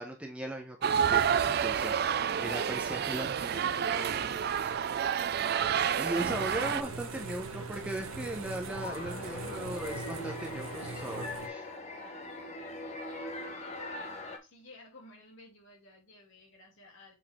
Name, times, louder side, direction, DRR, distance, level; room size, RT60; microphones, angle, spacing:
voice 1, 0.0-4.4 6.0-11.7 12.9-13.0, right 1 dB, 5° right, 0.8 m, -38 dB
sound 1, 0.8-6.8, right 8 dB, 45° right, 0.3 m, -29 dB
voice 2, 4.1-4.9 12.0-12.3 13.0-17.1, left 2 dB, 60° left, 2.8 m, -54 dB
sound 2, 6.2-11.5, right 4 dB, 75° right, 1.1 m, -41 dB
sound 3, 8.6-14.4, left 2 dB, 30° left, 1.0 m, -41 dB
6.7 x 4.2 x 3.6 m
head